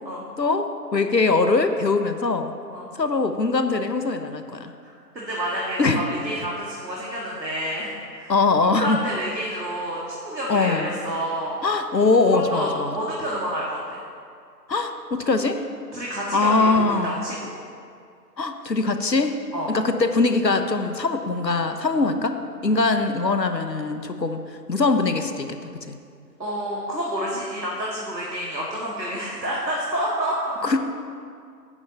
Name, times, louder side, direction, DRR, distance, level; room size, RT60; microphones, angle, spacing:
voice 1, 0.4-2.5 3.0-4.7 5.8-6.1 8.3-9.0 10.5-11.0 11.6-13.0 14.7-15.6 16.3-17.2 18.4-19.4 19.7-22.3 22.6-24.4 24.7-25.6 25.9-26.0 30.6-30.8, left 3 dB, 80° left, 7 dB, 1.0 m, -22 dB
voice 2, 4.8-8.3 8.8-11.6 12.3-14.0 15.9-17.5 19.5-19.7 26.4-30.6, equal, 85° right, -5 dB, 2.1 m, -29 dB
9.5 x 5.6 x 7.4 m, 2.3 s
figure-of-eight pair, 175°, 50 cm